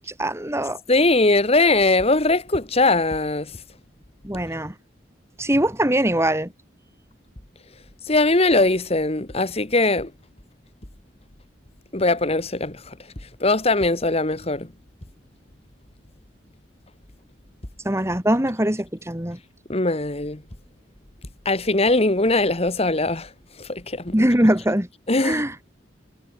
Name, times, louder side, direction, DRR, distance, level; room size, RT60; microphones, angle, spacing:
voice 1, 0.2-0.8 4.2-4.7 5.4-6.5 17.8-19.4 24.1-24.9 25.2-25.5, right 1 dB, 15° right, 3.4 m, -22 dB
voice 2, 0.9-3.5 8.1-10.1 11.9-13.0 13.4-14.7 19.7-20.4 21.5-23.3 23.6-24.3 25.1-25.6, left 2 dB, 30° left, 1.8 m, -20 dB
head